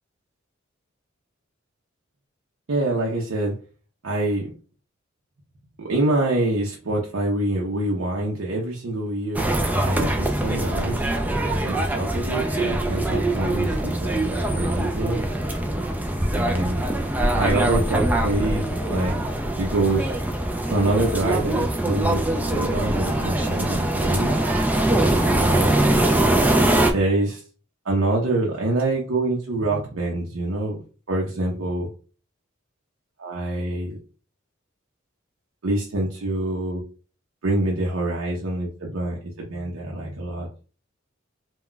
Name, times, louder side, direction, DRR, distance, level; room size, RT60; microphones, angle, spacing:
voice 1, 2.7-3.5 4.0-4.5 5.8-9.5 9.8-11.1 11.6-15.2 16.3-16.8 17.3-19.2 19.6-20.2 20.7-24.4 25.2-25.8 26.9-27.4 27.8-30.8 31.1-31.9 33.2-34.0 35.6-36.8 37.4-40.5, right 2 dB, 80° right, -2 dB, 0.7 m, -25 dB
sound 1, 9.4-26.9, right 1 dB, 10° right, 0.4 m, -23 dB
2.2 x 2.2 x 3.8 m, 0.37 s
head